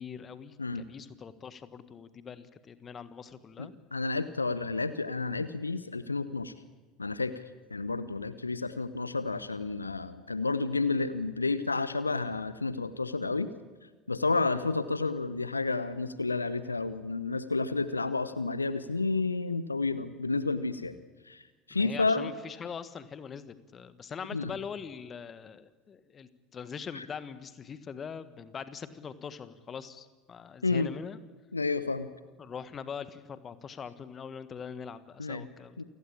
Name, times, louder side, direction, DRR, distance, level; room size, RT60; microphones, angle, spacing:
voice 1, 0.0-3.7 21.7-31.2 32.4-35.8, left 6 dB, 30° left, 13 dB, 1.6 m, -42 dB
voice 2, 3.6-6.5 7.0-7.4 7.7-13.5 14.1-20.9 21.2-22.3 24.3-24.5 26.9-27.0 30.6-30.9 31.5-32.1 35.2-35.5 35.8-35.9, left 3 dB, 85° left, 14 dB, 1.0 m, -31 dB
28.5 x 17.5 x 8.7 m, 1.3 s
figure-of-eight pair, 70°, 0 cm